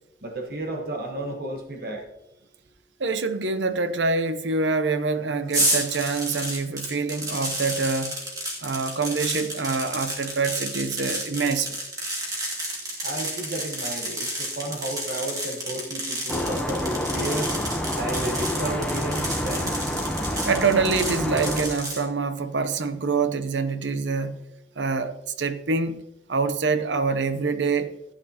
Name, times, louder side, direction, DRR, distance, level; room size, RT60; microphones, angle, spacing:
voice 1, 0.2-2.0 13.0-17.5 18.0-19.9, right 1 dB, 55° right, 1.2 m, -32 dB
voice 2, 3.0-8.1 8.6-11.8 20.5-24.4 24.8-26.0 26.3-28.0, right 4 dB, 90° right, 0.8 m, -25 dB
sound 1, 5.5-22.0, right 1 dB, 20° right, 2.2 m, -31 dB
sound 2, 16.3-21.8, equal, 5° left, 0.8 m, -28 dB
15.0 x 9.0 x 2.9 m
head